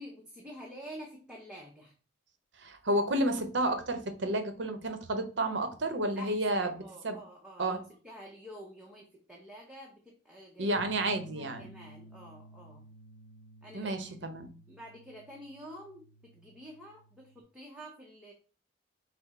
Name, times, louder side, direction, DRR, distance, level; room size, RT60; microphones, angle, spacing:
voice 1, 0.0-1.9 6.2-10.9 11.2-12.8 13.6-14.2 14.7-18.3, equal, 5° right, -2 dB, 0.7 m, -49 dB
voice 2, 2.6-7.2 7.6-7.8 10.6-11.7 13.7-14.5, right 1 dB, 60° right, 7 dB, 0.7 m, -31 dB
sound 1, 10.8-17.4, equal, 75° left, 0.4 m, -54 dB
5.9 x 2.0 x 4.1 m, 0.38 s
head